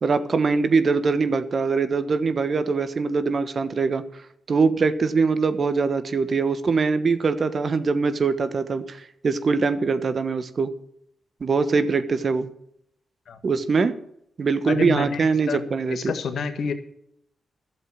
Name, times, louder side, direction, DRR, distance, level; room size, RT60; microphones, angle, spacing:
voice 1, 0.0-4.0 4.5-10.7 11.4-12.5 13.4-14.0 14.4-16.1, right 4 dB, 55° right, 11 dB, 1.2 m, -22 dB
voice 2, 14.7-16.7, left 5 dB, 70° left, 8 dB, 1.5 m, -29 dB
11.5 x 7.4 x 7.6 m, 0.74 s
supercardioid pair, 45°, 0 cm